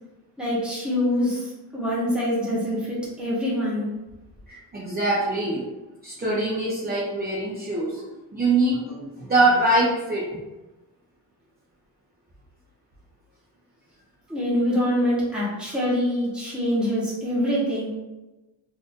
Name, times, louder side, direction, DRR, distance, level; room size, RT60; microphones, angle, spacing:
voice 1, 0.4-3.9 14.3-17.9, equal, ahead, -8 dB, 1.1 m, -25 dB
voice 2, 4.5-5.6 6.0-8.0 8.3-10.4, right 2 dB, 20° right, -6 dB, 0.5 m, -23 dB
2.6 x 2.5 x 3.5 m, 1.1 s
wide cardioid pair, 150°, 48 cm